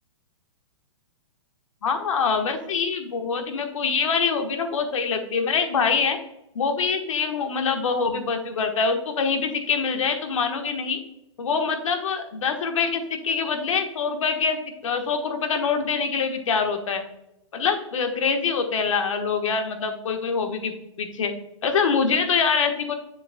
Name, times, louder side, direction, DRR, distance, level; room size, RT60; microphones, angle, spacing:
voice 1, 1.8-6.2 6.5-11.0 11.4-17.0 17.5-20.7 21.0-21.3 21.6-22.9, left 5 dB, 75° left, 5 dB, 1.3 m, -24 dB
7.6 x 6.9 x 2.2 m, 0.88 s
hypercardioid pair, 140°, 16 cm